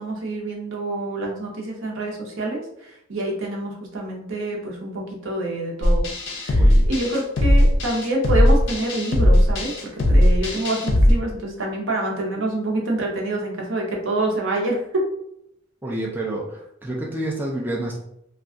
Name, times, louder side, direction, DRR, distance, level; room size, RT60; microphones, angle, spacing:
voice 1, 0.0-6.1 6.4-9.7 10.1-15.0, right 1 dB, 70° right, -1 dB, 0.7 m, -27 dB
sound 1, 5.8-11.1, equal, 60° left, 0.6 m, -18 dB
voice 2, 6.5-6.9 15.8-18.0, right 1 dB, 10° right, -3 dB, 0.4 m, -29 dB
2.4 x 2.3 x 3.5 m, 0.76 s
head